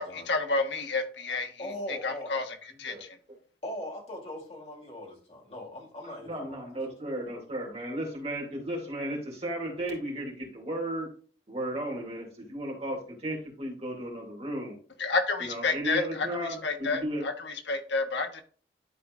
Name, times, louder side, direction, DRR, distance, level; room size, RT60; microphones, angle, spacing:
voice 1, 0.0-3.1 15.0-18.4, left 3 dB, 85° left, 1.3 m, -30 dB
voice 2, 1.6-2.4 3.6-6.6, left 1 dB, 35° left, 3.1 m, -40 dB
voice 3, 6.0-11.1 11.5-14.8 15.4-17.3, right 1 dB, 35° right, 2.7 m, -34 dB
11.5 x 4.2 x 2.5 m
head